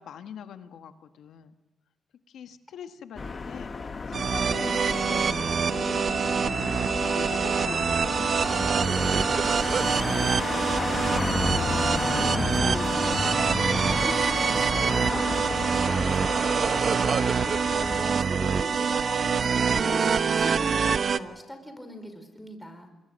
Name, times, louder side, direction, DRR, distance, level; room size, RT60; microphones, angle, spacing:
voice 1, 0.0-1.6 2.3-3.7 4.1-6.1 6.9-11.1, left 8 dB, 80° left, 8 dB, 1.5 m, -43 dB
sound 1, 3.2-18.0, left 4 dB, 40° left, 1.3 m, -32 dB
sound 2, 4.1-21.2, right 6 dB, 55° right, 0.9 m, -25 dB
voice 2, 12.1-17.4 17.7-22.9, equal, 5° left, 6 dB, 5.0 m, -39 dB
27.0 x 22.0 x 6.5 m, 1.1 s
cardioid pair, 70°, 0 cm